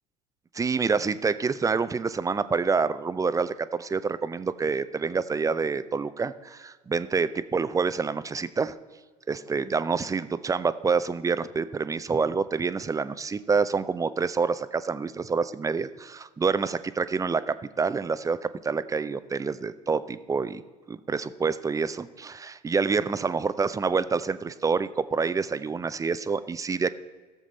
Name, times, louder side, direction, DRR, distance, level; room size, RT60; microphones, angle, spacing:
voice 1, 0.5-8.8 9.3-20.6 20.9-26.9, right 5 dB, 15° right, 14 dB, 0.5 m, -27 dB
16.0 x 7.4 x 4.0 m, 1.4 s
figure-of-eight pair, 70°, 21 cm